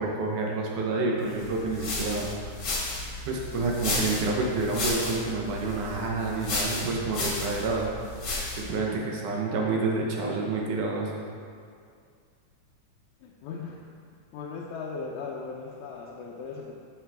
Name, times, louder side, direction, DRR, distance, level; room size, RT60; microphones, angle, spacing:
voice 1, 0.0-2.5 3.3-7.9 8.6-11.1, right 3 dB, 75° right, -1 dB, 2.3 m, -28 dB
sound 1, 1.4-8.8, left 2 dB, 40° left, 1.7 m, -33 dB
voice 2, 13.2-13.9 14.3-16.7, left 4 dB, 75° left, -3 dB, 1.9 m, -38 dB
12.5 x 5.9 x 3.5 m, 2.2 s
omnidirectional pair, 3.7 m